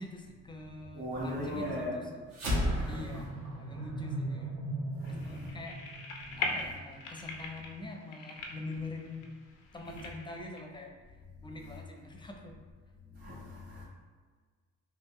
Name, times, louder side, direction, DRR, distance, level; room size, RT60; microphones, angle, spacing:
voice 1, 0.0-2.2 2.8-3.3 3.6-4.5 5.1-5.8 6.4-9.3 9.7-11.2 11.4-12.6, left 2 dB, 15° left, 1 dB, 0.6 m, -44 dB
voice 2, 0.9-2.0 2.8-3.2 5.0-5.5 6.3-6.4 13.2-13.8, left 1 dB, 30° right, -8 dB, 1.2 m, -38 dB
sound 1, 2.3-7.0, equal, 65° right, 1.1 m, -35 dB
sound 2, 5.1-10.6, left 3 dB, 85° left, 0.6 m, -41 dB
3.6 x 2.5 x 3.1 m, 1.5 s
cardioid pair, 90°, 30 cm